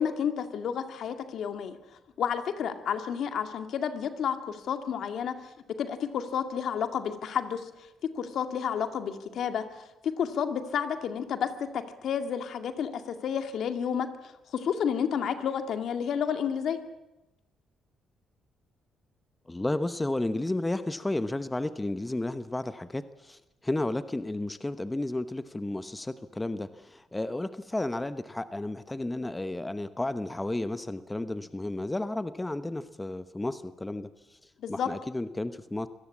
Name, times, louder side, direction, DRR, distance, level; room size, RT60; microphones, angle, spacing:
voice 1, 0.0-1.8 2.2-5.3 5.8-7.7 8.0-16.8 34.6-34.9, left 8 dB, 70° left, 8 dB, 2.2 m, -31 dB
voice 2, 19.5-35.9, left 2 dB, 15° left, 12 dB, 0.9 m, -32 dB
25.0 x 18.0 x 8.5 m, 0.95 s
cardioid pair, 90°, 0 cm